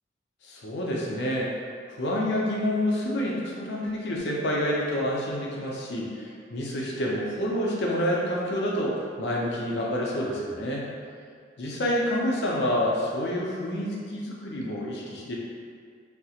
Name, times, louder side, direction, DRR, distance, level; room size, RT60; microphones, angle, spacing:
voice 1, 0.4-1.5 1.9-10.9 11.6-15.3, equal, 70° left, -3 dB, 0.5 m, -28 dB
2.3 x 2.0 x 2.8 m, 2.2 s
head